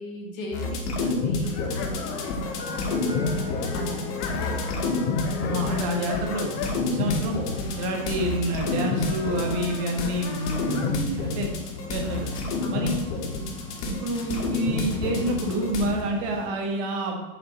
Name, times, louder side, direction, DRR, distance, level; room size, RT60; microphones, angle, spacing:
voice 1, 0.0-3.3 3.7-4.4 12.6-13.1, left 1 dB, 75° left, 0 dB, 2.2 m, -38 dB
sound 1, 0.5-15.9, left 3 dB, 55° left, 1.6 m, -28 dB
sound 2, 1.4-11.0, left 6 dB, 35° left, 0.8 m, -37 dB
sound 3, 2.0-16.5, left 3 dB, 15° left, 0.4 m, -40 dB
voice 2, 5.4-7.4 7.8-11.5 11.9-12.3 12.7-13.0 13.9-17.2, right 1 dB, 40° right, 2 dB, 1.5 m, -28 dB
6.1 x 5.5 x 4.1 m, 1.2 s
hypercardioid pair, 140°, 41 cm